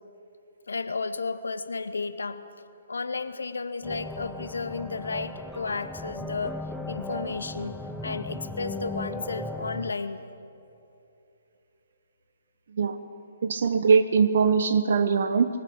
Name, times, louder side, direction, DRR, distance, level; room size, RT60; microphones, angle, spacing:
voice 1, 0.7-2.5 2.9-6.6 6.9-10.3, left 4 dB, 80° left, 12 dB, 1.0 m, -33 dB
sound 1, 3.8-9.9, left 2 dB, ahead, 0.7 m, -37 dB
voice 2, 13.4-15.5, right 5 dB, 65° right, 11 dB, 1.1 m, -21 dB
20.0 x 19.5 x 8.7 m, 2.8 s
hypercardioid pair, 140°, 0 cm